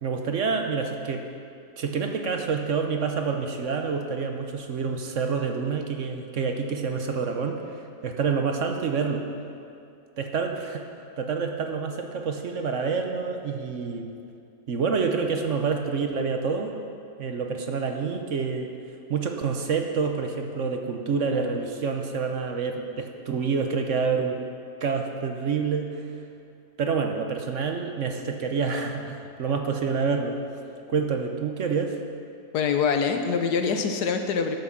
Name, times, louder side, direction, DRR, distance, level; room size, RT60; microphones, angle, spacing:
voice 1, 0.0-1.3 1.8-7.6 8.0-9.3 10.2-10.9 11.2-14.1 14.7-16.7 17.2-18.8 19.1-24.4 24.8-25.9 26.8-30.4 30.9-32.0, right 5 dB, 55° right, 4 dB, 1.0 m, -27 dB
voice 2, 32.5-34.6, left 6 dB, 85° left, 6 dB, 1.4 m, -24 dB
12.0 x 6.2 x 7.3 m, 2.5 s
omnidirectional pair, 1.7 m